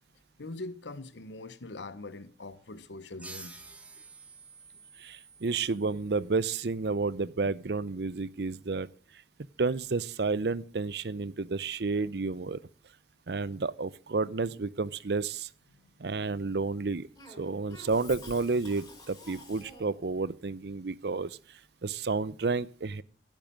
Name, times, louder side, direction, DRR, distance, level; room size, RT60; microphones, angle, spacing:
voice 1, 0.4-4.0 15.7-15.8, left 2 dB, 85° left, 1.0 m, -43 dB
sound 1, 3.2-6.4, right 3 dB, 10° right, 1.4 m, -50 dB
voice 2, 5.0-8.9 9.6-12.6 13.3-15.5 16.0-17.1 17.4-21.4 21.8-23.0, right 3 dB, 65° right, 0.6 m, -31 dB
Cough, 17.2-20.1, left 2 dB, 20° left, 6.6 m, -49 dB
15.5 x 9.1 x 7.4 m
head